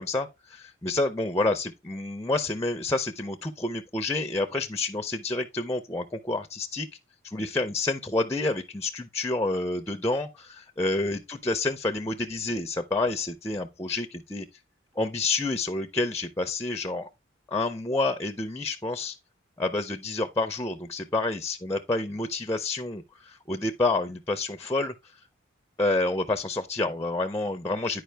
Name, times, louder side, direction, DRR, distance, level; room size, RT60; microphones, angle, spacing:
voice 1, 0.0-6.9 7.2-14.5 15.0-17.1 17.5-19.2 19.6-24.9 25.8-28.0, left 2 dB, 15° left, 0.4 m, -28 dB
10.0 x 4.8 x 3.3 m
head